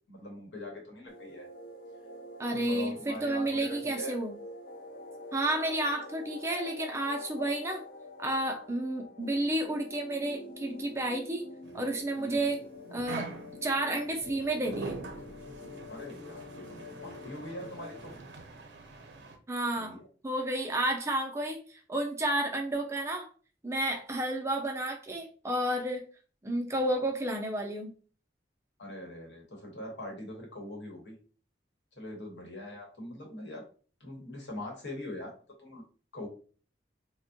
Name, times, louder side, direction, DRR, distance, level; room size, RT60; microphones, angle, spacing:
voice 1, 0.1-1.5 2.5-4.2 12.2-12.5 15.9-18.1 19.8-20.1 28.8-31.2 32.0-33.6 34.0-35.3 35.6-35.8 36.1-36.3, left 1 dB, 75° left, 0 dB, 1.1 m, -42 dB
sound 1, 1.1-18.1, left 2 dB, 55° left, 0.5 m, -46 dB
voice 2, 2.4-4.3 5.3-7.8 8.2-11.5 11.7-12.6 12.9-13.3 13.6-15.0 19.5-20.0 20.2-21.6 21.9-23.3 23.6-26.1 26.4-27.9, right 1 dB, 15° right, 2 dB, 0.4 m, -31 dB
sound 2, 11.6-19.4, right 3 dB, 75° right, 0.5 m, -44 dB
3.4 x 2.2 x 2.6 m, 0.39 s
head